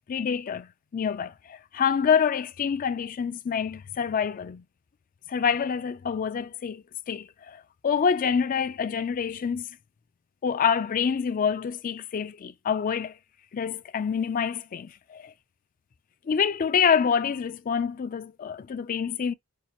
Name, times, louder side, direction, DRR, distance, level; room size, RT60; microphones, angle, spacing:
voice 1, 0.1-0.7 0.9-4.6 5.3-9.7 10.4-13.1 13.5-15.3 16.3-19.3, left 7 dB, 40° left, 0.3 m, -27 dB
5.4 x 2.8 x 2.3 m
head